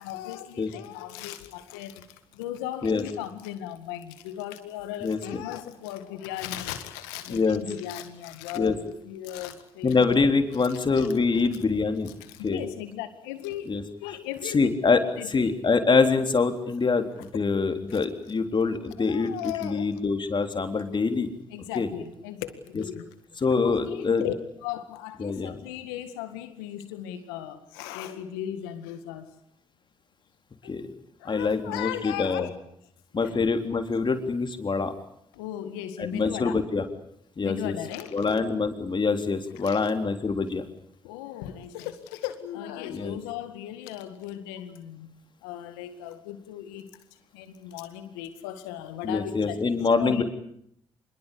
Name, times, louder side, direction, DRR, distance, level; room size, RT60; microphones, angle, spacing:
voice 1, 0.0-2.1 2.3-10.0 11.0-11.1 12.2-14.7 15.2-15.4 17.9-18.0 19.0-19.9 21.5-23.1 23.6-24.3 24.6-29.3 30.6-30.7 31.2-32.5 33.2-33.4 35.3-36.6 37.4-38.3 39.6-39.9 41.0-45.2 45.4-46.9 47.3-49.6 50.0-50.2, left 12 dB, 90° left, 1.9 m, -37 dB
voice 2, 5.0-5.4 7.3-7.6 8.6-8.7 9.8-12.1 12.4-12.6 13.7-13.8 14.4-17.1 17.3-21.3 21.8-21.9 23.4-24.2 25.2-25.6 30.6-30.9 31.2-32.5 33.1-34.9 36.0-36.9 37.4-37.7 38.1-40.6 42.9-43.2 49.0-50.2, left 4 dB, 40° left, 3.6 m, -25 dB
25.5 x 22.0 x 8.5 m
hypercardioid pair, 45°, 12 cm